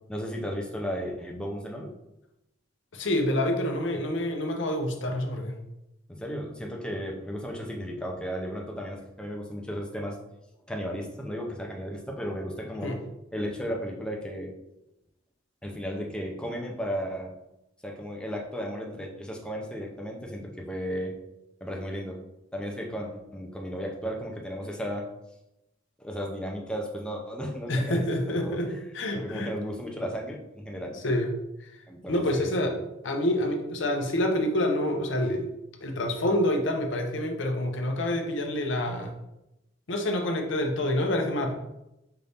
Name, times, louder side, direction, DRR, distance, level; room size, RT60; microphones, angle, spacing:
voice 1, 0.1-1.9 6.1-10.2 10.7-12.9 13.3-14.5 15.6-17.3 17.8-21.1 21.6-22.2 22.5-25.0 26.0-28.8 29.1-31.0 31.9-32.8, equal, 5° left, 0 dB, 0.6 m, -34 dB
voice 2, 2.9-5.6 12.8-13.0 27.7-29.5 31.0-31.3 31.6-31.8 32.1-32.8 33.0-35.5 35.8-39.1 39.9-41.5, left 1 dB, 70° left, 3 dB, 0.7 m, -27 dB
5.6 x 2.6 x 3.4 m, 0.89 s
head